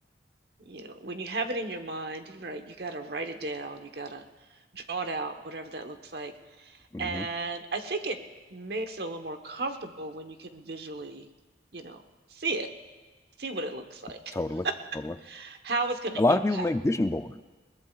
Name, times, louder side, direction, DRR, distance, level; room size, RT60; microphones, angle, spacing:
voice 1, 0.6-4.2 4.7-8.2 8.5-11.3 11.7-12.0 12.3-12.7 13.4-14.4 14.6-14.7 15.2-16.7, right 3 dB, 65° right, 6 dB, 1.1 m, -35 dB
voice 2, 6.9-7.3 14.3-14.7 15.0-15.1 16.2-17.4, left 2 dB, 15° left, 10 dB, 0.4 m, -26 dB
21.5 x 19.0 x 2.4 m, 1.3 s
head